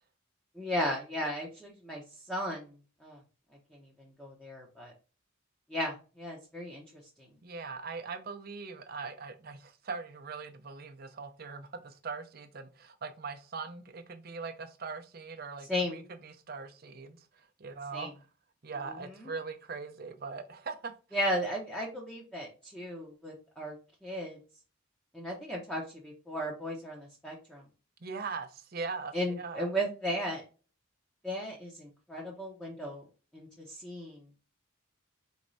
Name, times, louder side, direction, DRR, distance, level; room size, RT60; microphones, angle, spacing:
voice 1, 0.5-2.0 2.3-2.7 3.0-3.2 3.7-3.9 4.2-4.9 5.7-6.8 7.2-7.3 15.7-16.0 17.9-18.1 18.8-19.3 21.1-23.7 24.0-24.4 25.1-27.6 29.1-30.4 31.2-33.0 33.3-34.2, equal, 5° left, 0.7 m, -35 dB
voice 2, 7.4-17.2 17.6-18.1 18.6-20.9 28.0-29.7, right 4 dB, 50° right, 0.6 m, -41 dB
4.4 x 3.1 x 2.6 m
head